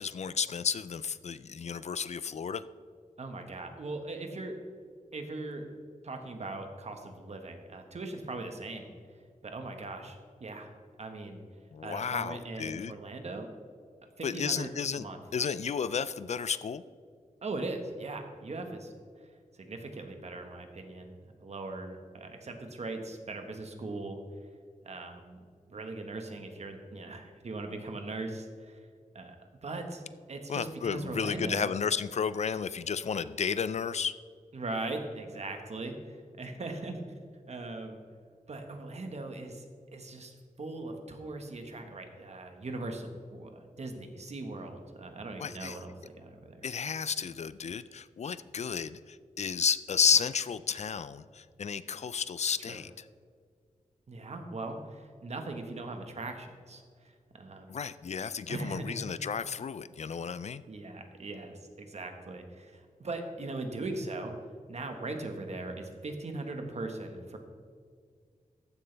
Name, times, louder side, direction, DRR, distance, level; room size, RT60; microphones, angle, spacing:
voice 1, 0.0-2.6 11.7-12.9 14.2-15.0 15.3-16.8 30.5-34.1 45.4-45.8 46.6-52.9 57.7-60.6, left 6 dB, 55° left, 15 dB, 0.4 m, -32 dB
voice 2, 3.2-4.6 5.1-5.6 6.0-8.9 9.4-10.7 11.0-11.4 11.8-13.5 14.2-15.2 17.4-18.9 19.5-21.1 21.4-24.2 24.8-25.4 25.7-28.9 29.1-29.4 29.6-30.0 30.3-31.7 34.5-37.0 37.5-38.0 38.5-39.6 39.9-46.6 52.7-52.8 54.1-57.7 58.5-59.0 60.7-64.3 64.7-67.4, right 2 dB, 55° right, 5 dB, 1.4 m, -40 dB
14.0 x 10.5 x 3.4 m, 2.1 s
wide cardioid pair, 135°, 14 cm